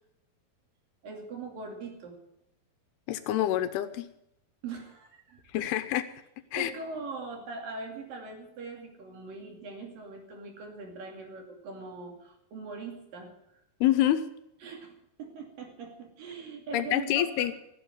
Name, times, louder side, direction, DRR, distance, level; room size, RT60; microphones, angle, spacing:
voice 1, 1.0-2.2 4.6-5.4 6.5-13.3 14.6-14.9 15.2-17.6, right 4 dB, 60° right, 2 dB, 4.2 m, -41 dB
voice 2, 3.1-4.1 5.5-6.1 6.5-6.7 13.8-14.2 16.7-17.5, left 12 dB, 80° left, 11 dB, 2.8 m, -26 dB
15.5 x 8.1 x 9.5 m, 0.80 s
omnidirectional pair, 4.7 m